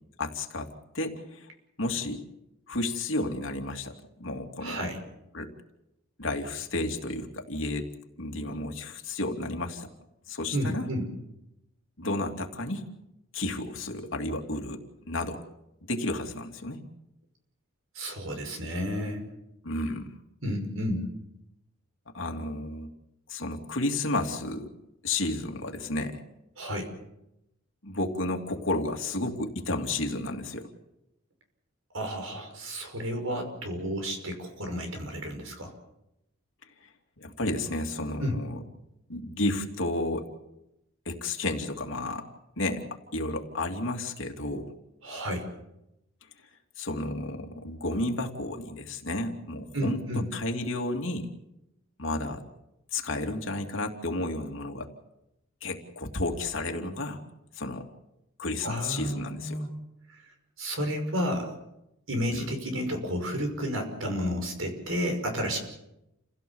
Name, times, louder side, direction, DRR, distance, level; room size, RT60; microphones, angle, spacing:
voice 1, 0.2-1.5 1.8-2.2 2.7-4.9 5.3-5.5 6.2-7.9 8.2-9.9 10.3-10.9 12.0-12.8 13.3-15.4 15.9-16.8 19.6-20.1 22.1-22.9 23.3-24.7 25.0-26.2 27.8-30.7 37.2-38.6 39.1-40.3 41.0-42.2 42.6-42.8 43.1-44.7 46.8-51.3 52.0-52.4 52.9-54.9 55.6-57.2 57.5-57.9 58.4-59.6 62.3-62.5, left 2 dB, 70° left, 3 dB, 2.7 m, -32 dB
voice 2, 4.6-5.0 10.5-11.1 17.9-19.2 20.4-21.1 26.6-26.9 31.9-35.7 38.2-38.4 45.0-45.5 49.7-50.3 58.6-59.7 60.1-60.2 60.6-61.5 62.1-65.6, equal, 85° right, 5 dB, 5.8 m, -31 dB
29.5 x 16.5 x 7.2 m, 0.88 s
head